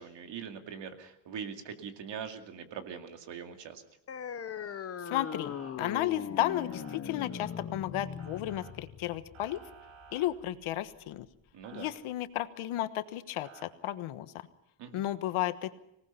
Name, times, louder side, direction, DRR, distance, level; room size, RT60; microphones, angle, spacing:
voice 1, 0.0-3.8 11.5-11.9 14.8-15.0, right 7 dB, 60° right, 6 dB, 2.4 m, -42 dB
sound 1, 4.1-11.1, left 7 dB, 30° left, 0.9 m, -40 dB
voice 2, 5.0-9.6 10.1-11.3 11.7-14.3 14.9-15.8, left 14 dB, 85° left, 12 dB, 1.4 m, -33 dB
Motor vehicle (road) / Siren, 5.2-5.7 6.4-7.0 8.2-8.7 9.3-10.3 11.6-11.9 13.4-13.6, right 8 dB, 80° right, 4.9 m, -53 dB
25.0 x 18.5 x 5.7 m, 0.82 s
cardioid pair, 170°, 48 cm